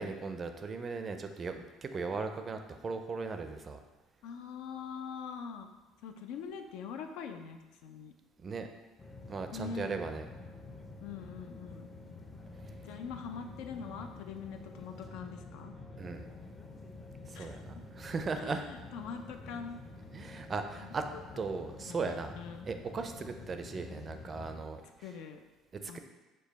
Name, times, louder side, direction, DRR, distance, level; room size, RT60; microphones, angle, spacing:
voice 1, 0.0-3.8 8.4-8.7 9.3-10.3 16.0-16.2 17.3-18.6 20.1-21.1 21.4-22.3 22.6-24.8 25.8-26.0, right 4 dB, 35° right, 7 dB, 0.4 m, -37 dB
voice 2, 4.2-5.7 6.0-8.1 9.5-9.9 11.0-11.9 12.8-15.7 17.3-17.8 18.4-19.8 20.8-20.9 21.9-22.7 25.0-25.4 25.9-26.0, left 6 dB, 75° left, 6 dB, 0.4 m, -43 dB
sound 1, 9.0-24.6, left 2 dB, 25° left, 0.5 m, -49 dB
5.0 x 2.2 x 4.0 m, 1.2 s
supercardioid pair, 100°, 0 cm